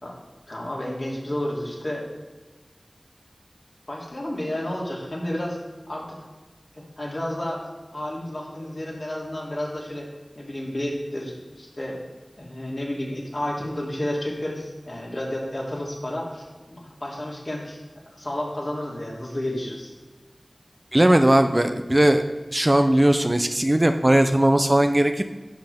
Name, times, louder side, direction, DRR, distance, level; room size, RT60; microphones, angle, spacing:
voice 1, 0.5-2.0 3.9-5.6 5.9-6.1 7.0-7.7 7.9-10.1 10.4-12.0 12.4-17.8 18.1-19.9, left 1 dB, 50° left, -3 dB, 3.1 m, -31 dB
voice 2, 20.9-22.2 22.5-25.2, right 1 dB, 30° right, 7 dB, 0.6 m, -18 dB
11.5 x 7.6 x 3.6 m, 1.2 s
wide cardioid pair, 55°, 0 cm